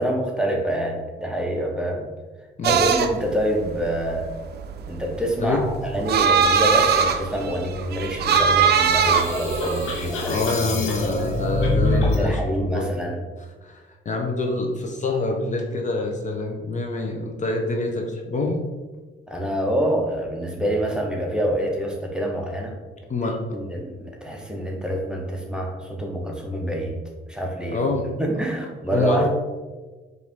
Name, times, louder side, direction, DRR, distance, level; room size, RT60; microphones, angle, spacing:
voice 1, 0.0-2.1 2.6-4.3 4.9-10.3 10.6-10.9 12.0-13.2 19.3-22.7 23.5-26.9 27.3-27.8 28.2-29.3, right 1 dB, 5° right, 0 dB, 0.7 m, -26 dB
sound 1, 2.6-10.4, right 6 dB, 55° right, 0.4 m, -21 dB
sound 2, 8.3-12.2, left 2 dB, 80° left, 1.0 m, -25 dB
voice 2, 10.3-12.9 13.6-18.6 23.1-23.4 27.7-28.1 28.9-29.3, left 3 dB, 40° left, 2 dB, 0.6 m, -26 dB
4.9 x 2.6 x 3.5 m, 1.3 s
cardioid pair, 90°, 20 cm